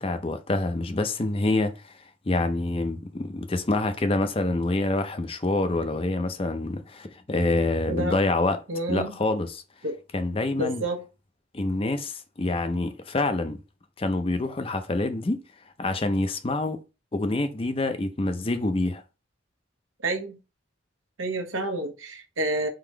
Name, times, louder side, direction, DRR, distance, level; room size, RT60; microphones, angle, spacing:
voice 1, 0.0-8.6 8.9-9.6 10.1-10.8 11.5-13.6 14.0-15.4 15.8-16.8 17.1-19.0, left 2 dB, 30° left, 0.5 m, -26 dB
voice 2, 8.7-9.1 9.8-10.0 10.6-11.0 20.0-20.4 21.2-22.7, right 1 dB, 85° right, 1.1 m, -29 dB
3.8 x 3.0 x 4.6 m
head